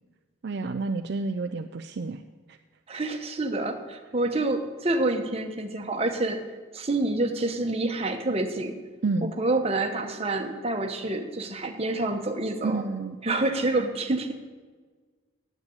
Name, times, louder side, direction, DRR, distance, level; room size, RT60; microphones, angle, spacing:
voice 1, 0.4-2.2 2.5-2.6 9.0-9.3 12.6-13.2, right 3 dB, 55° right, 7 dB, 0.4 m, -29 dB
voice 2, 2.9-6.5 6.7-8.7 9.2-12.8 13.2-14.3, right 2 dB, 30° right, 4 dB, 1.0 m, -27 dB
9.7 x 8.1 x 8.1 m, 1.5 s
head